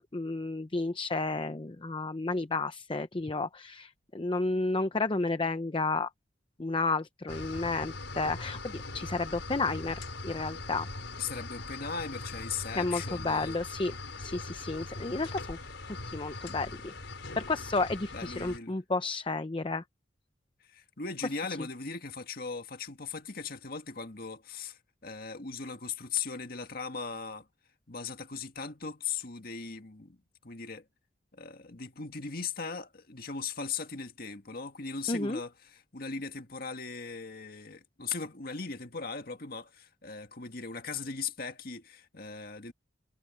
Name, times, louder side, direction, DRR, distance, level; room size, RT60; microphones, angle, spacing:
voice 1, 0.0-6.1 6.6-10.9 12.7-15.6 15.9-16.9 17.4-19.8 35.1-35.4, left 3 dB, 30° left, 0.7 m, -32 dB
sound 1, 7.3-18.6, left 3 dB, 80° left, 4.5 m, -41 dB
voice 2, 11.2-13.6 18.1-18.8 20.7-27.5 27.9-30.2 30.4-30.8 31.3-42.7, left 5 dB, 55° left, 1.9 m, -38 dB
head